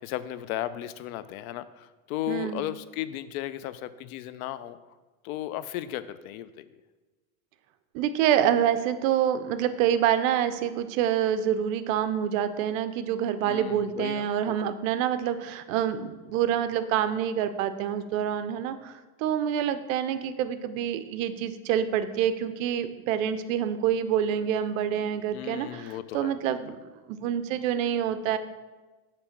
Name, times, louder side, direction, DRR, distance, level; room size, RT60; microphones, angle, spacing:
voice 1, 0.0-4.8 5.2-6.7 13.4-14.5 25.3-26.3, left 13 dB, 75° left, 14 dB, 0.5 m, -35 dB
voice 2, 2.3-2.7 7.9-26.8 27.1-28.4, right 9 dB, 65° right, 11 dB, 0.6 m, -27 dB
6.1 x 3.2 x 5.8 m, 1.2 s
supercardioid pair, 155°, 43 cm